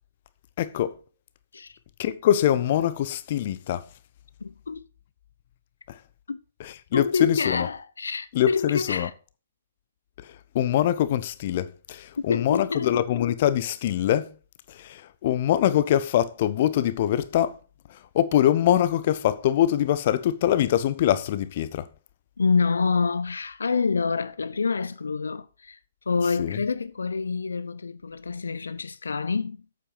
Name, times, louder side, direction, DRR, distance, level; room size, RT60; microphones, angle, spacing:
voice 1, 0.6-1.0 2.0-3.8 5.9-6.0 6.6-7.7 8.3-9.1 10.2-14.3 14.7-17.6 17.9-21.9 26.4-26.6, left 11 dB, 40° left, 0.9 m, -24 dB
voice 2, 4.4-4.9 6.3-6.4 6.9-9.1 12.2-12.9 22.4-25.8 26.1-29.6, left 4 dB, 70° left, 0.5 m, -27 dB
8.5 x 7.9 x 5.5 m
figure-of-eight pair, 125°, 0 cm